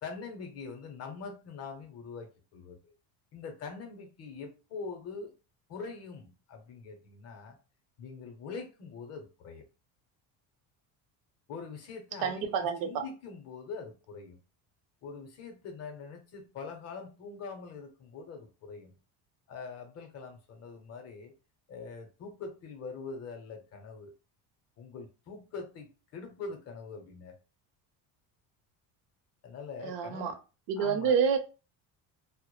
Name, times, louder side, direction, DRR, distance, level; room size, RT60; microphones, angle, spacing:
voice 1, 0.0-2.9 3.3-5.3 5.7-7.6 8.0-9.7 11.5-14.4 15.0-18.9 19.5-21.3 21.7-24.1 24.8-27.4 29.4-30.4 30.8-31.2, left 4 dB, 40° left, 0.6 m, -43 dB
voice 2, 12.2-13.0 29.8-30.3 30.7-31.4, right 7 dB, 60° right, 0.6 m, -28 dB
2.2 x 2.0 x 3.0 m
cardioid pair, 145°, 40 cm